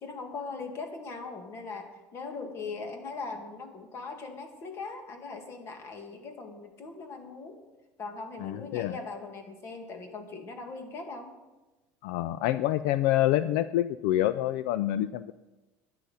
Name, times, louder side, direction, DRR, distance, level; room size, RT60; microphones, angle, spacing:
voice 1, 0.0-7.6 8.0-11.3, left 4 dB, 40° left, 5 dB, 2.0 m, -40 dB
voice 2, 8.4-9.0 12.0-15.3, left 14 dB, 80° left, 14 dB, 0.4 m, -27 dB
12.0 x 10.0 x 5.6 m, 1.1 s
cardioid pair, 135°, 7 cm